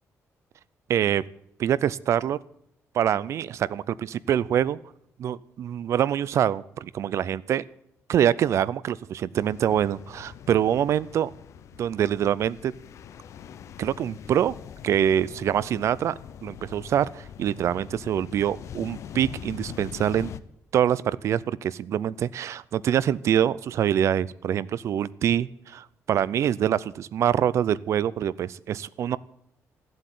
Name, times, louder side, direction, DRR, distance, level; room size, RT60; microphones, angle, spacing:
voice 1, 0.9-1.2 1.6-2.4 2.9-4.8 5.2-7.6 8.1-11.3 11.8-12.7 13.8-14.5 14.8-16.1 16.4-20.3 20.7-29.2, right 10 dB, 55° right, 20 dB, 0.5 m, -25 dB
sound 1, 9.4-20.4, left 8 dB, 60° left, 0.7 m, -43 dB
14.5 x 7.9 x 9.2 m, 0.74 s
cardioid pair, 165°, 6 cm